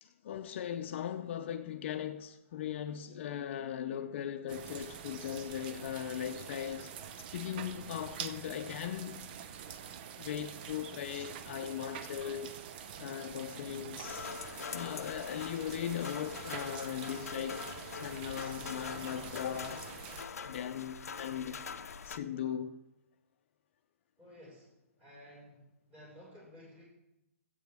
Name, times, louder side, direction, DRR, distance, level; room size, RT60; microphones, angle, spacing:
voice 1, 0.0-9.2 10.2-12.6 13.0-17.7 17.9-19.9 20.5-21.6 22.1-22.8, left 9 dB, 50° left, 0.7 m, -39 dB
sound 1, 4.5-20.2, right 8 dB, 40° right, 0.7 m, -46 dB
sound 2, 14.0-22.2, left 6 dB, 85° left, 0.7 m, -44 dB
voice 2, 24.2-26.8, left 1 dB, 15° right, 5.2 m, -54 dB
17.0 x 8.4 x 3.5 m
hypercardioid pair, 155°, 8 cm